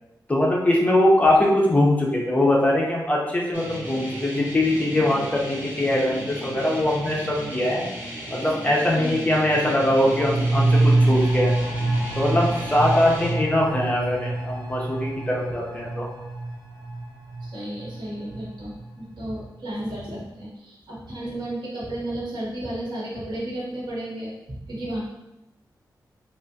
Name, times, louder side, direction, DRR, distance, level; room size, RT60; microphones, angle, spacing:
voice 1, 0.3-7.8 8.3-11.5 12.2-16.1, left 1 dB, 20° left, -3 dB, 0.6 m, -22 dB
sound 1, 3.5-13.3, right 1 dB, 25° right, 0.9 m, -35 dB
sound 2, 9.6-19.0 19.3-19.4, right 2 dB, 40° right, 0.5 m, -26 dB
voice 2, 17.4-25.0, right 1 dB, 75° right, -5 dB, 1.1 m, -33 dB
3.4 x 2.4 x 2.7 m, 0.91 s
wide cardioid pair, 125°, 8 cm